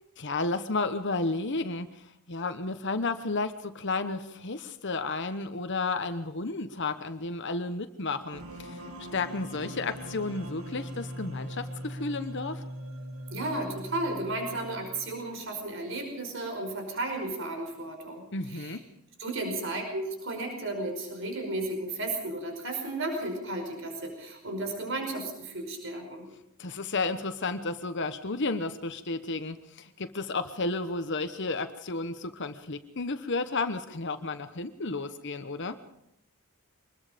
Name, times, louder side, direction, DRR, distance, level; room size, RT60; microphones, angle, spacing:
voice 1, 0.2-8.8 9.1-12.6 18.3-18.8 26.6-35.8, left 3 dB, 55° left, 9 dB, 1.0 m, -32 dB
sound 1, 8.3-15.3, equal, 75° right, 2.6 m, -41 dB
voice 2, 13.3-18.8 19.2-26.3, right 2 dB, 55° right, 3 dB, 5.2 m, -34 dB
24.5 x 21.0 x 5.2 m, 0.80 s
head